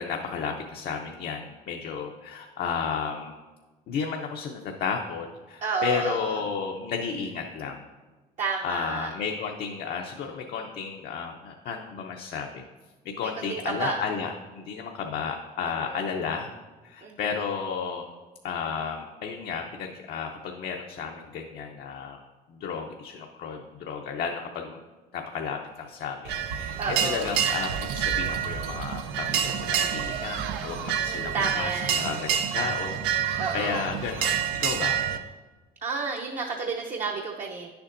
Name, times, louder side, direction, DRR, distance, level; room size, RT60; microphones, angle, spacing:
voice 1, 0.0-3.3 3.9-7.8 8.6-12.7 13.0-16.5 16.8-18.1 18.4-22.2 22.5-24.8 25.1-35.0, left 6 dB, 65° left, 2 dB, 0.7 m, -33 dB
voice 2, 5.6-6.4 8.4-9.1 13.2-14.0 15.8-16.0 17.0-17.4 26.8-27.3 31.1-32.1 33.4-33.9 35.8-37.7, right 4 dB, 45° right, 0 dB, 0.8 m, -31 dB
sound 1, 26.2-35.2, right 9 dB, 90° right, 0.6 m, -28 dB
9.9 x 7.0 x 2.6 m, 1.3 s
cardioid pair, 110°, 17 cm